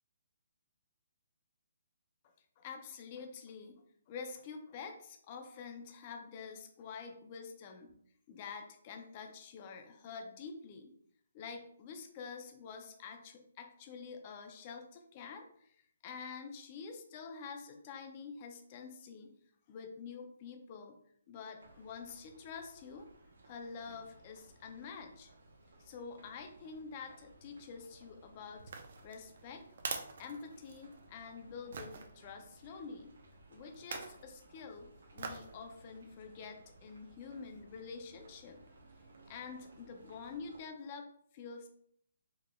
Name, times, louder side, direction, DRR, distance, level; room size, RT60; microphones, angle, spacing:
voice 1, 2.6-7.9 8.3-10.9 11.3-19.3 19.7-21.0 21.3-23.1 23.5-25.3 25.8-28.7 29.0-29.6 30.2-33.1 33.5-38.6 39.3-41.7, left 5 dB, 25° left, 4 dB, 0.4 m, -47 dB
sound 1, 21.6-40.6, right 2 dB, 85° right, 0.9 m, -60 dB
sound 2, 28.6-31.0 31.7-32.1 33.7-34.2 35.2-35.5 36.0-36.1, right 4 dB, 50° right, 0.5 m, -43 dB
4.0 x 3.2 x 2.2 m, 0.66 s
hypercardioid pair, 170°, 0 cm